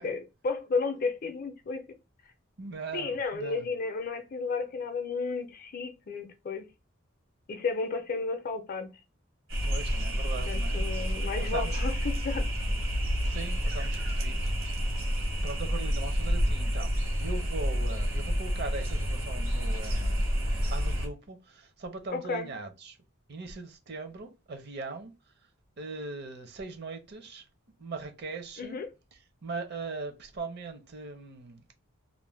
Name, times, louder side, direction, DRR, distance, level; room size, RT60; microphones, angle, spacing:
voice 1, 0.0-1.8 2.9-6.7 7.5-8.9 10.5-12.5 22.1-22.5 28.6-28.9, left 4 dB, 45° left, 0.5 m, -33 dB
voice 2, 2.6-3.7 9.6-10.8 11.4-11.8 13.2-14.5 15.4-23.0 23.3-25.1 25.8-27.4 27.8-28.8 29.4-31.7, right 3 dB, 55° right, 0.7 m, -40 dB
sound 1, 9.5-21.1, equal, 70° right, 1.0 m, -29 dB
2.5 x 2.1 x 3.2 m
head